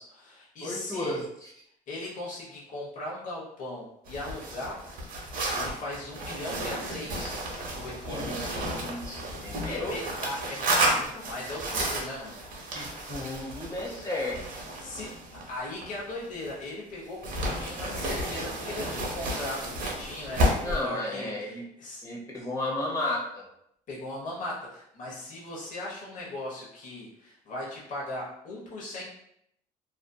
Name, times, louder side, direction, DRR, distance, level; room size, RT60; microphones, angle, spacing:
voice 1, 0.0-1.1 1.9-4.8 5.5-8.5 9.7-12.4 14.8-15.2 15.5-22.0 23.9-29.0, left 2 dB, 50° left, -5 dB, 0.9 m, -38 dB
voice 2, 0.6-1.5 8.1-10.0 12.7-14.4 20.6-21.6 22.0-23.2, left 1 dB, 20° left, -4 dB, 0.9 m, -33 dB
sound 1, 4.1-16.7 17.2-20.8, right 1 dB, 55° right, 0.8 m, -32 dB
2.6 x 2.4 x 2.3 m, 0.75 s
cardioid pair, 110°, 17 cm